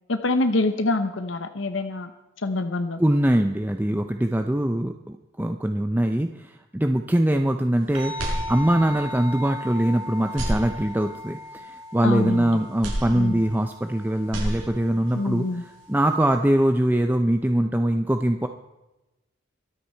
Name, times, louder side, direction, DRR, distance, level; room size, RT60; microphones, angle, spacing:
voice 1, 0.1-2.1 2.4-3.0 12.0-12.6 13.1-13.4 15.1-15.6, left 2 dB, 75° left, 9 dB, 1.0 m, -25 dB
voice 2, 3.0-15.5 15.9-18.5, right 1 dB, 10° right, 6 dB, 0.6 m, -23 dB
sound 1, 8.0-16.6, left 1 dB, 30° right, 4.1 m, -39 dB
sound 2, 8.1-9.1 9.5-9.6 10.2-11.3 12.8-13.9 14.2-15.1, equal, 90° right, 6.5 m, -31 dB
23.5 x 8.5 x 4.5 m, 1.0 s
head